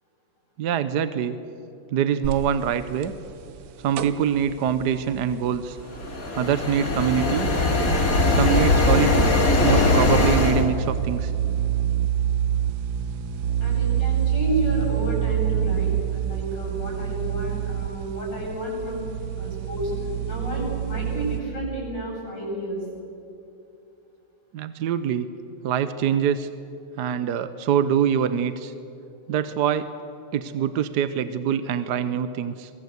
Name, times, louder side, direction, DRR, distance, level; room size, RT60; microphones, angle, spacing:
voice 1, 0.6-1.4 1.9-3.1 3.8-5.8 6.4-7.5 8.4-9.3 9.6-11.3 24.5-25.3 25.6-26.5 27.0-28.7 29.3-29.9 30.3-32.7, right 8 dB, 65° right, 12 dB, 1.3 m, -24 dB
sound 1, 2.2-21.4, right 10 dB, 85° right, 1.7 m, -28 dB
sound 2, 6.0-10.6, left 2 dB, 45° left, 2.7 m, -20 dB
voice 2, 13.6-19.0 19.4-22.8, right 1 dB, 65° left, -3 dB, 8.9 m, -31 dB
23.0 x 22.5 x 8.1 m, 2.7 s
omnidirectional pair, 2.1 m